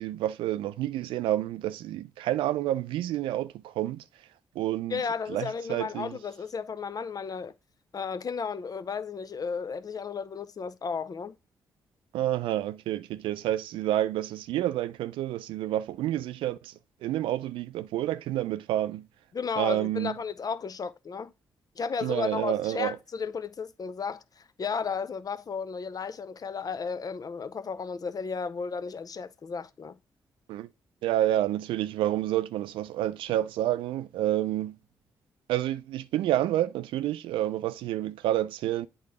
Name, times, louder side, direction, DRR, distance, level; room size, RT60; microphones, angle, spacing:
voice 1, 0.0-4.0 4.6-5.0 5.3-6.1 12.1-16.7 17.0-19.1 19.6-20.2 22.0-23.0 30.5-30.7 31.0-34.8 35.5-38.9, right 13 dB, 80° right, 0.4 m, -29 dB
voice 2, 4.9-7.5 7.9-11.4 19.3-21.3 21.8-30.0, left 5 dB, 45° left, 0.6 m, -34 dB
8.4 x 2.9 x 4.8 m
supercardioid pair, 45°, 9 cm